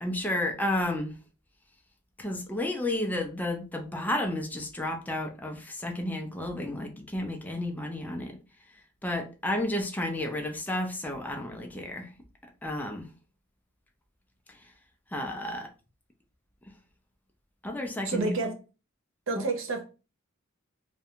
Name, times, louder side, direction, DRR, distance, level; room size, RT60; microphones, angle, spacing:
voice 1, 0.0-1.1 2.2-8.4 9.0-12.1 12.6-13.1 15.1-15.7 17.6-18.3 19.4-19.5, left 1 dB, 10° left, 0.4 m, -32 dB
voice 2, 18.0-18.5 19.3-19.8, right 3 dB, 65° right, 0.6 m, -29 dB
2.5 x 2.2 x 2.8 m
head